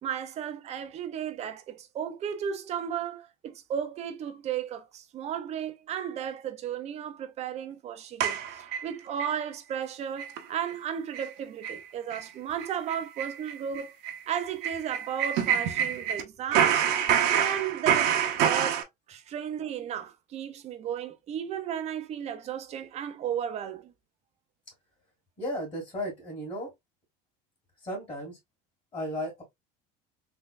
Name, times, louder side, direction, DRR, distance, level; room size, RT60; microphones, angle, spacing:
voice 1, 0.0-13.9 14.3-16.8 17.3-23.9, right 9 dB, 35° right, 0.6 m, -34 dB
sound 1, 8.2-9.3 9.7-9.8 10.2-10.4 10.7-10.8 11.1-11.3 11.6-11.8 12.1-12.2 12.6-16.2 16.5-18.8, right 9 dB, 60° right, 1.0 m, -27 dB
voice 2, 25.4-26.7 27.8-28.4 28.9-29.4, equal, 25° left, 1.8 m, -34 dB
3.6 x 3.4 x 2.5 m
cardioid pair, 150°, 19 cm